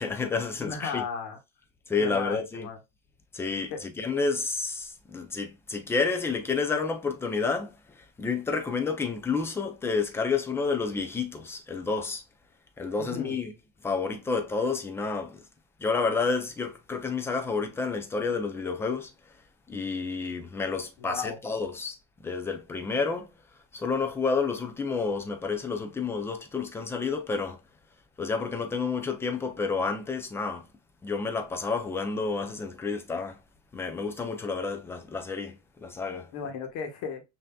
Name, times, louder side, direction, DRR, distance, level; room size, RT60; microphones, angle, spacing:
voice 1, 0.0-1.0 1.9-2.7 3.3-12.2 12.8-13.5 13.8-15.4 15.8-19.1 19.7-23.3 23.7-27.6 28.2-30.7 31.0-33.4 33.7-36.3, left 4 dB, 10° left, 0.3 m, -30 dB
voice 2, 0.6-1.4 2.0-2.8 3.7-3.8 13.0-13.4 21.0-21.4 36.3-37.2, left 6 dB, 60° left, 1.2 m, -35 dB
5.6 x 2.7 x 2.2 m
cardioid pair, 165°, 33 cm